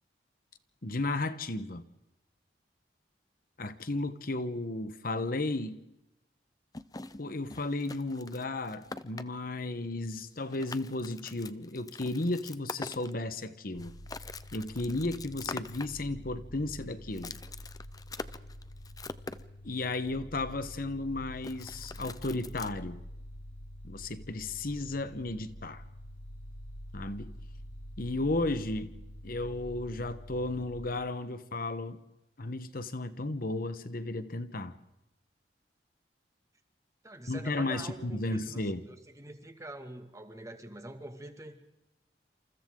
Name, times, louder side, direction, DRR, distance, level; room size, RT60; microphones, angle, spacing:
voice 1, 0.8-1.9 3.6-5.8 7.2-14.0 14.5-17.3 19.6-23.0 23.8-25.8 26.9-27.3 28.0-28.9 29.2-32.0 32.4-34.7 37.3-38.8, left 2 dB, 55° left, 1.2 m, -34 dB
sound 1, 6.7-9.2 10.2-10.3 10.5-13.4 13.8-15.9 17.1-19.4 21.4-22.7, left 3 dB, 20° left, 0.8 m, -43 dB
sound 2, 13.7-30.9, equal, 90° left, 7.6 m, -47 dB
voice 2, 37.0-41.6, right 1 dB, 20° right, 2.1 m, -45 dB
28.5 x 28.5 x 3.9 m
head